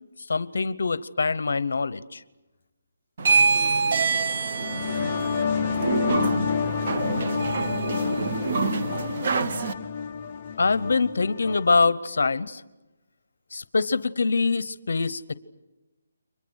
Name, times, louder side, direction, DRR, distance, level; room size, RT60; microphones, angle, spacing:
voice 1, 0.3-2.2 10.6-12.6 13.5-15.3, left 4 dB, 65° left, 17 dB, 0.8 m, -24 dB
voice 2, 3.2-4.2 4.6-6.8 9.4-9.6, equal, 20° right, -3 dB, 4.8 m, -43 dB
sound 1, 3.2-9.7, right 4 dB, 35° right, 1.0 m, -25 dB
sound 2, 4.5-11.9, left 6 dB, 20° left, 0.9 m, -29 dB
29.5 x 24.5 x 6.5 m, 1.1 s
hypercardioid pair, 180°, 0 cm